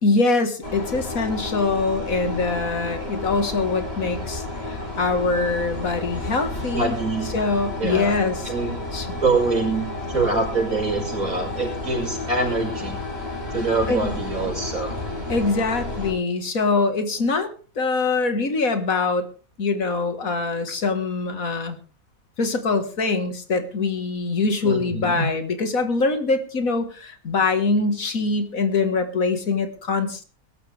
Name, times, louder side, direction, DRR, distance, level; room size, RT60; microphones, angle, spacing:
voice 1, 0.0-7.0 7.3-8.5 8.9-9.1 13.9-14.1 15.3-19.3 19.6-21.8 22.4-30.2, left 3 dB, 65° left, 8 dB, 2.2 m, -23 dB
sound 1, 0.6-16.1, left 2 dB, 40° left, 7.4 m, -31 dB
voice 2, 6.7-7.3 7.8-8.2 8.4-8.7 9.1-13.0 13.5-15.0 24.6-25.2, right 3 dB, 65° right, 1 dB, 6.4 m, -24 dB
22.0 x 12.5 x 3.5 m, 0.36 s
omnidirectional pair, 1.6 m